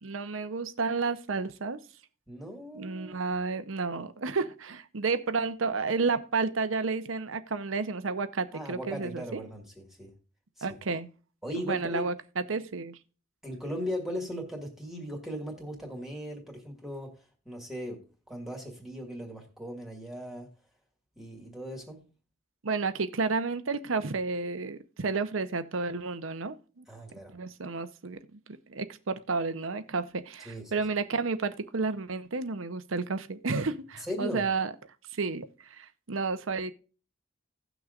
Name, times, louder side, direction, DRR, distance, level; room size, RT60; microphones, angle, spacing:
voice 1, 0.0-1.8 2.7-9.4 10.6-11.1 11.6-13.0 22.6-26.8 27.3-28.4 28.7-34.7 35.1-36.7, right 4 dB, 90° right, 0.8 m, -31 dB
voice 2, 2.3-3.2 8.5-10.1 10.6-10.8 11.4-12.1 13.4-17.1 17.5-20.5 21.2-22.0 26.9-27.3 30.4-30.7 34.0-34.5, equal, ahead, 1.9 m, -38 dB
17.0 x 6.2 x 2.5 m
head